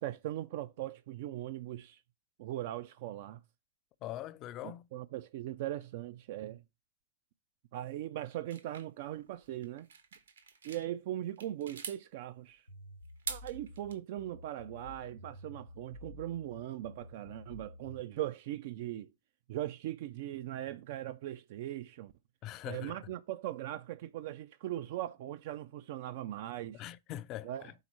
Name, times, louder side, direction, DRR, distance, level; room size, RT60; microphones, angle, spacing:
voice 1, 0.0-2.0 2.4-3.4 4.6-6.6 7.7-9.9 10.6-12.6 13.3-19.1 19.5-22.1 22.7-26.8 27.4-27.7, right 13 dB, 50° right, 0.4 m, -40 dB
voice 2, 4.0-4.9 22.4-23.0 26.7-27.7, left 13 dB, 35° left, 0.5 m, -42 dB
sound 1, 8.5-10.9 11.3-12.0 13.0-13.9, right 6 dB, 70° right, 1.0 m, -44 dB
sound 2, 12.7-18.0, left 1 dB, 85° left, 0.9 m, -51 dB
5.5 x 4.2 x 5.9 m
figure-of-eight pair, 90°, 0 cm